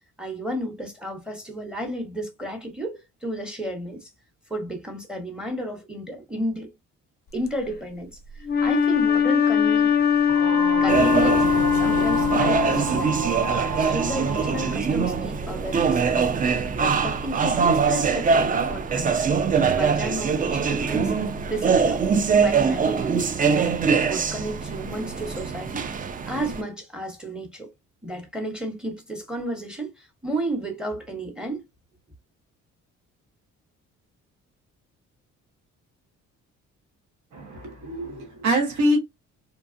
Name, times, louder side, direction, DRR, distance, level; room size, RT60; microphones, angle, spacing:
voice 1, 0.2-4.1 4.5-6.7 7.3-8.2 8.6-10.0 10.8-13.4 13.8-16.3 16.8-19.3 19.7-21.1 21.5-22.0 22.3-23.7 24.1-25.9 26.3-27.7 28.0-31.6, right 1 dB, 5° right, 1.0 m, -32 dB
Wind instrument woodwind instrument, 8.5-13.2, left 8 dB, 35° left, 0.5 m, -21 dB
sound 1, 10.3-14.8, right 4 dB, 45° right, 0.8 m, -30 dB
sound 2, 10.9-26.6, right 5 dB, 30° right, 0.4 m, -23 dB
voice 2, 37.3-39.0, equal, 75° right, 1.2 m, -24 dB
2.8 x 2.3 x 2.5 m
cardioid pair, 90°, 30 cm